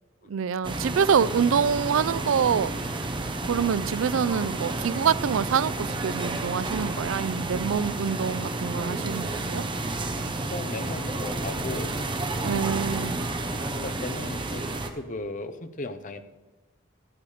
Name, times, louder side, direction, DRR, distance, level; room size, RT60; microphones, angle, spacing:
voice 1, 0.3-3.1 3.5-9.6 12.4-13.2, right 7 dB, 85° right, 0.4 m, -26 dB
sound 1, 0.6-14.9, right 2 dB, 25° right, 1.0 m, -31 dB
voice 2, 10.5-11.9 12.7-13.0 13.7-16.2, left 2 dB, 40° left, 0.8 m, -36 dB
12.5 x 9.0 x 5.0 m
head